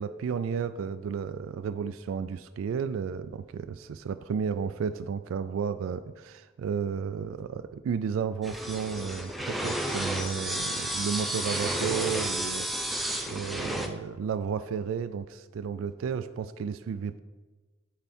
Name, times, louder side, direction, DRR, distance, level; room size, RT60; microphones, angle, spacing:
voice 1, 0.0-17.2, right 6 dB, 85° right, 11 dB, 0.3 m, -33 dB
sound 1, 8.4-13.9, right 1 dB, ahead, 0.5 m, -32 dB
10.5 x 4.6 x 4.3 m, 1.3 s
head